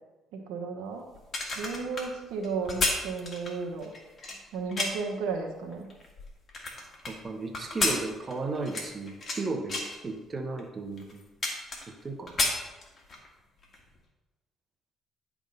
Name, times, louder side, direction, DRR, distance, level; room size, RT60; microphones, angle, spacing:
voice 1, 0.3-1.1 1.5-3.9 4.5-5.9, right 4 dB, 85° right, 2 dB, 1.0 m, -34 dB
sound 1, 1.2-5.2 5.7-7.1 7.5-9.4 9.7-10.0 10.6-10.7 11.0-12.0 12.3-13.3 13.6-13.8, left 2 dB, 40° left, 1.8 m, -31 dB
voice 2, 7.1-11.2 12.0-12.4, right 3 dB, 35° right, 3 dB, 1.1 m, -35 dB
10.5 x 3.6 x 5.3 m, 1.1 s
supercardioid pair, 80°, 0 cm